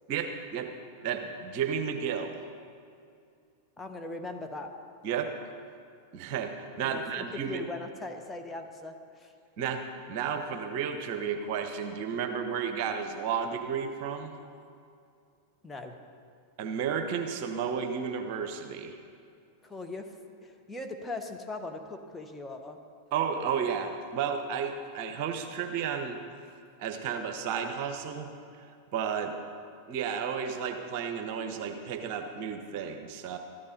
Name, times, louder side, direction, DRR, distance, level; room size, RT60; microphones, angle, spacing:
voice 1, 0.1-0.7 1.0-2.4 5.0-5.3 6.1-7.6 9.6-14.3 16.6-18.9 23.1-26.2 26.8-28.3 28.9-29.3 29.9-33.4, right 7 dB, 45° right, 6 dB, 1.1 m, -32 dB
voice 2, 3.8-4.7 6.8-9.3 15.6-16.0 19.6-20.1 20.4-22.8, left 2 dB, 10° left, 3 dB, 1.2 m, -40 dB
14.0 x 12.0 x 5.3 m, 2.4 s
figure-of-eight pair, 90°, 0 cm